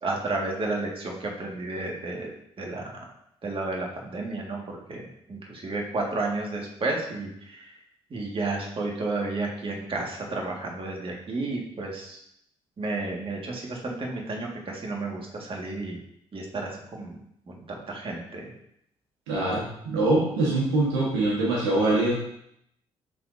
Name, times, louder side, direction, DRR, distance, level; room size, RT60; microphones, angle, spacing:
voice 1, 0.0-2.3 2.6-3.0 3.4-5.0 5.3-7.7 8.1-12.2 12.8-16.0 16.3-17.2 17.5-18.5, right 2 dB, 45° right, -1 dB, 1.8 m, -32 dB
voice 2, 19.3-22.2, right 2 dB, 90° right, -4 dB, 1.4 m, -24 dB
11.0 x 4.1 x 2.7 m, 0.75 s
hypercardioid pair, 50°, 13 cm